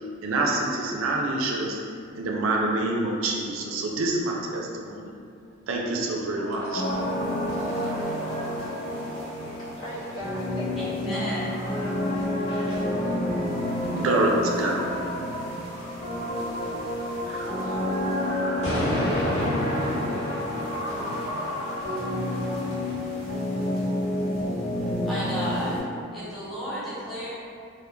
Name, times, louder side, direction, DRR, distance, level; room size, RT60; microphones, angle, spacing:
voice 1, 0.2-1.8 2.2-5.1 5.7-6.8 13.9-14.8 17.2-17.6, right 2 dB, 85° right, -1 dB, 0.4 m, -26 dB
sound 1, 6.3-22.9, equal, 30° left, 0.8 m, -34 dB
sound 2, 6.7-25.8, left 1 dB, 65° left, 1.1 m, -30 dB
voice 2, 9.3-11.4 11.8-13.0, equal, 85° left, -7 dB, 0.7 m, -41 dB
voice 3, 11.0-11.4 25.0-25.8 26.1-27.3, equal, ahead, -11 dB, 0.6 m, -32 dB
2.2 x 2.1 x 3.1 m, 2.4 s
head